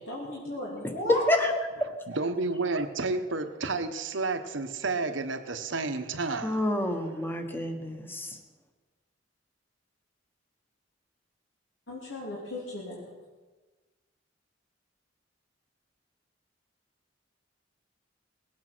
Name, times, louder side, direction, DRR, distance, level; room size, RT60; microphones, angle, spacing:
voice 1, 0.0-1.2 11.9-13.0, left 1 dB, 85° left, -5 dB, 3.2 m, -36 dB
voice 2, 2.1-6.6, right 3 dB, 75° right, 9 dB, 1.1 m, -31 dB
voice 3, 6.4-8.4, left 1 dB, 10° left, 5 dB, 1.3 m, -28 dB
20.0 x 8.7 x 6.1 m, 1.3 s
head